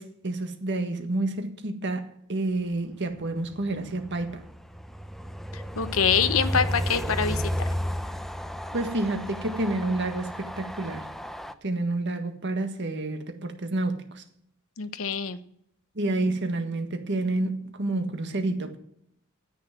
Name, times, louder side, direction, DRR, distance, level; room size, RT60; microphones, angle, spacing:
voice 1, 0.0-4.4 8.7-11.1 11.6-14.2 16.0-18.8, right 2 dB, 60° right, 1.7 m, -29 dB
Train, 3.1-11.5, equal, ahead, 0.6 m, -33 dB
voice 2, 5.5-7.5 14.8-15.4, left 7 dB, 75° left, 0.9 m, -25 dB
10.5 x 8.4 x 7.7 m
head